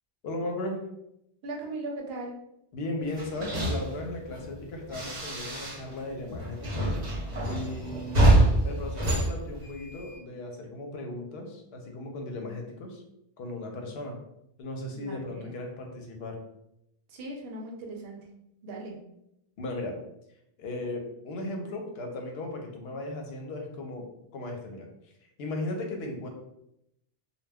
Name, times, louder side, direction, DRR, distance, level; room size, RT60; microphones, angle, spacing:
voice 1, 0.2-0.8 2.7-7.0 7.4-8.3 8.6-13.0 13.4-14.1 14.6-16.4 19.6-20.0 20.6-24.1 24.3-24.9 25.4-26.3, left 2 dB, 80° left, 2 dB, 0.8 m, -36 dB
voice 2, 1.4-2.4 14.9-15.5 17.1-18.2 18.6-19.0, right 2 dB, 75° right, 0 dB, 0.8 m, -38 dB
sound 1, 3.1-6.0 6.3-10.2, right 1 dB, 45° right, 0.9 m, -26 dB
2.2 x 2.2 x 3.4 m, 0.81 s
omnidirectional pair, 1.0 m